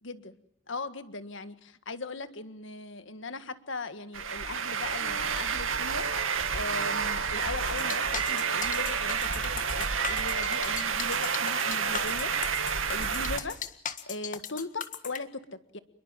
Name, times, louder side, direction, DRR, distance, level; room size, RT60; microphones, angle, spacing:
voice 1, 0.0-0.4 0.7-12.3 12.6-13.6 14.1-15.8, left 3 dB, 60° left, 11 dB, 1.8 m, -39 dB
sound 1, 4.1-13.4, right 6 dB, 70° right, 2.4 m, -29 dB
sound 2, 7.7-15.2, left 8 dB, 40° left, 1.6 m, -38 dB
29.0 x 22.0 x 7.6 m, 0.68 s
head